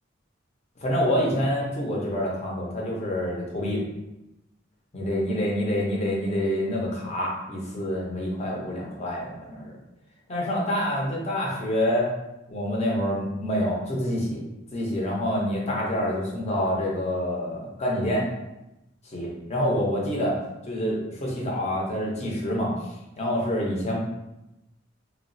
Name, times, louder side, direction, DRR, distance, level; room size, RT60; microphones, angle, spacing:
voice 1, 0.8-3.8 4.9-9.7 10.3-12.1 12.5-14.4 14.7-18.2 19.0-20.4 20.7-24.0, equal, 35° left, -2 dB, 0.7 m, -27 dB
3.0 x 2.3 x 2.6 m, 0.93 s
head